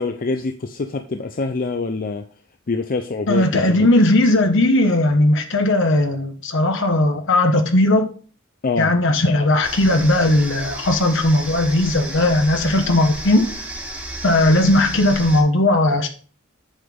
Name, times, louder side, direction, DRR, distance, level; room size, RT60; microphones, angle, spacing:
voice 1, 0.0-2.2 2.7-3.8 8.6-8.9, left 3 dB, 45° left, 0.5 m, -25 dB
voice 2, 3.3-8.0 8.8-13.4 14.2-16.1, left 1 dB, 65° left, 1.3 m, -17 dB
sound 1, 9.6-15.4, right 1 dB, 5° right, 1.5 m, -32 dB
8.0 x 6.1 x 3.7 m
head